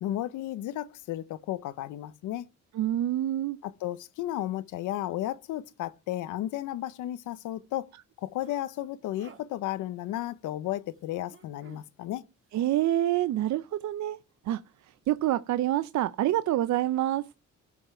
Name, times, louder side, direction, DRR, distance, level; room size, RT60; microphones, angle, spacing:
voice 1, 0.0-2.5 3.6-7.9 8.2-12.2, left 13 dB, 85° left, 0.8 m, -33 dB
voice 2, 2.7-3.6 12.5-14.2 14.4-17.3, right 13 dB, 65° right, 0.6 m, -27 dB
sound 1, 8.2-8.6 9.1-9.4 11.3-11.9, right 6 dB, 45° right, 1.8 m, -52 dB
15.0 x 5.5 x 4.4 m
cardioid pair, 90°, 30 cm